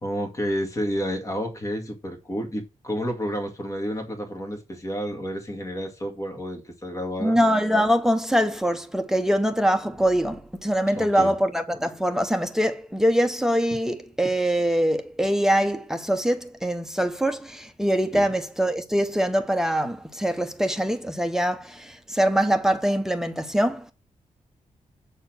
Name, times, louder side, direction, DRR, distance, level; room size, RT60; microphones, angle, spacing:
voice 1, 0.0-7.4 11.0-11.3 18.1-18.2, equal, 25° left, 2.1 m, -30 dB
voice 2, 7.2-23.9, equal, 5° right, 0.8 m, -23 dB
8.0 x 4.3 x 6.1 m
wide cardioid pair, 150°, 13 cm